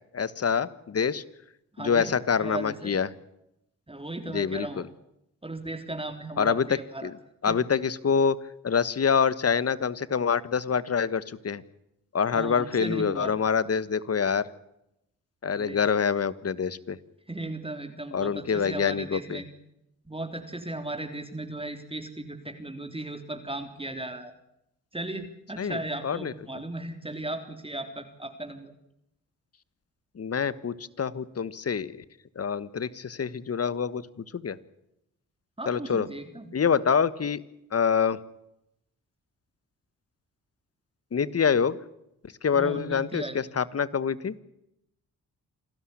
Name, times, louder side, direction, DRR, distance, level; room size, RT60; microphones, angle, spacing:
voice 1, 0.1-1.2 1.8-3.1 4.3-4.9 6.4-7.2 7.4-8.4 8.6-11.6 12.1-14.5 15.4-17.0 18.1-19.4 25.6-26.3 30.1-32.0 32.3-34.0 34.3-34.6 35.7-36.1 36.5-37.4 37.7-38.2 41.1-41.8 42.2-44.3, left 6 dB, 45° left, 18 dB, 1.4 m, -26 dB
voice 2, 1.7-2.1 2.4-2.9 3.9-4.8 5.4-7.1 7.5-7.6 12.3-13.3 15.5-15.8 17.3-19.5 20.1-24.3 24.9-28.7 35.6-36.5 42.5-43.4, right 2 dB, 15° right, 6 dB, 3.6 m, -36 dB
28.0 x 13.0 x 10.0 m, 0.82 s
supercardioid pair, 50°, 35 cm